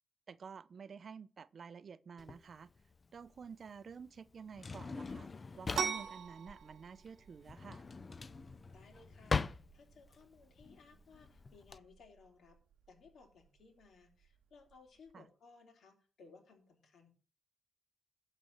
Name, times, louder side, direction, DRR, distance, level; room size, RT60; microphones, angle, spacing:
voice 1, 0.3-2.7 3.1-5.3 5.6-7.8 15.1-15.2, right 6 dB, 50° right, 0.5 m, -50 dB
Drawer open or close, 2.2-11.8, left 4 dB, 35° left, 0.5 m, -42 dB
sound 1, 5.7-15.1, right 7 dB, 75° right, 0.8 m, -46 dB
voice 2, 8.7-12.6 12.9-17.1, left 4 dB, 70° left, 3.1 m, -61 dB
11.0 x 4.2 x 7.7 m
cardioid pair, 100°, 0 cm